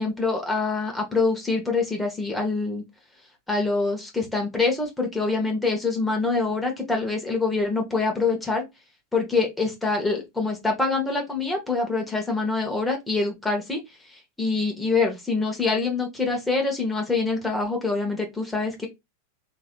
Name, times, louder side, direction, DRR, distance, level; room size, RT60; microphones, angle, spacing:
voice 1, 0.0-2.8 3.5-8.6 9.1-13.8 14.1-18.9, left 3 dB, 5° left, 1.1 m, -25 dB
3.1 x 2.7 x 2.4 m
figure-of-eight pair, 90°, 0 cm